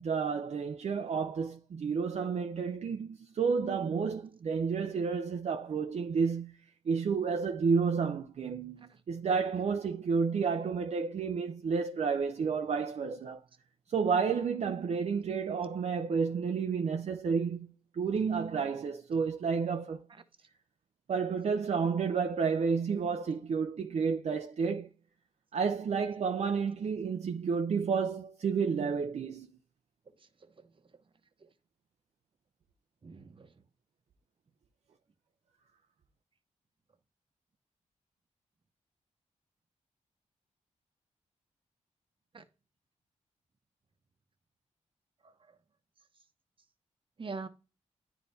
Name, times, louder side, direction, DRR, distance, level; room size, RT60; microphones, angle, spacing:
voice 1, 0.0-6.6 6.9-13.4 13.9-20.1 21.1-24.9 25.5-29.5, right 5 dB, 60° right, 0.5 m, -31 dB
voice 2, 30.2-30.7 31.4-31.5 33.0-33.5 42.3-42.4 45.2-45.6 47.2-47.5, right 4 dB, 40° right, 0.9 m, -45 dB
10.0 x 4.0 x 2.7 m
cardioid pair, 75°, 13 cm